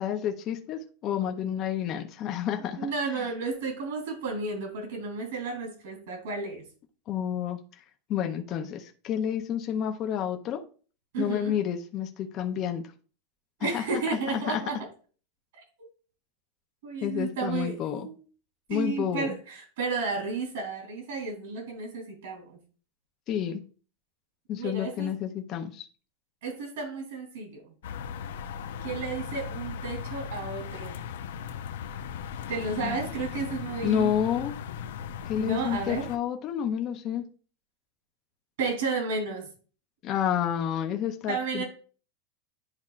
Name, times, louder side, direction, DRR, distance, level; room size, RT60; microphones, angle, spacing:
voice 1, 0.0-2.9 7.1-7.6 8.1-10.6 11.2-12.8 13.6-13.8 14.1-14.6 17.0-18.1 18.7-19.3 23.3-23.6 24.5-25.9 32.8-33.0 33.8-34.6 35.2-37.2 40.0-41.6, left 9 dB, 25° left, 4 dB, 0.5 m, -29 dB
voice 2, 2.8-6.6 11.1-11.5 13.6-14.8 16.8-18.1 18.7-22.6 24.5-25.1 26.4-27.7 28.8-31.0 32.5-34.1 35.4-36.1 38.6-39.5 41.3-41.6, right 4 dB, 65° right, 2 dB, 3.0 m, -32 dB
sound 1, 27.8-36.2, left 7 dB, 75° left, 0.6 m, -37 dB
10.5 x 4.3 x 2.4 m, 0.40 s
supercardioid pair, 180°, 0 cm